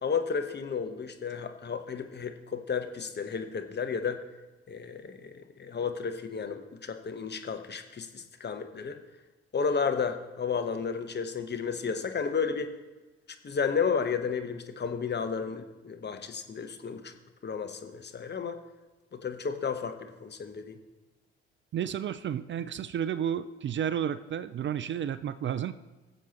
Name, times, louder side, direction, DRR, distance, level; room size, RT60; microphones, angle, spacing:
voice 1, 0.0-4.2 4.7-9.0 9.5-12.7 13.4-17.1 17.4-18.6 19.1-20.8, left 6 dB, 35° left, 7 dB, 1.1 m, -32 dB
voice 2, 21.7-25.7, right 9 dB, 40° right, 14 dB, 0.5 m, -32 dB
19.5 x 7.5 x 3.0 m, 1.2 s
hypercardioid pair, 45°, 30 cm